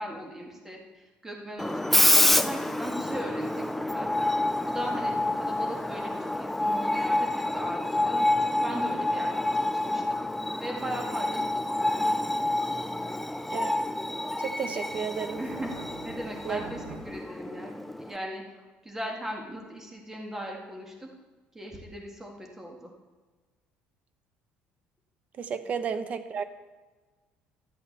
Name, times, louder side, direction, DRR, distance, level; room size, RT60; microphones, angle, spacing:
voice 1, 0.0-4.3 4.7-10.0 10.6-12.1 15.4-15.7 16.0-21.1 21.5-22.9, equal, 10° right, 0 dB, 2.0 m, -39 dB
Screech, 1.6-18.2, left 1 dB, 5° left, 0.3 m, -28 dB
sound 1, 4.6-17.0, right 5 dB, 90° right, 1.6 m, -53 dB
voice 2, 14.4-15.4 16.4-16.6 25.4-26.4, right 6 dB, 40° right, 10 dB, 0.8 m, -32 dB
12.5 x 7.7 x 4.1 m, 1.3 s
cardioid pair, 130°, 4 cm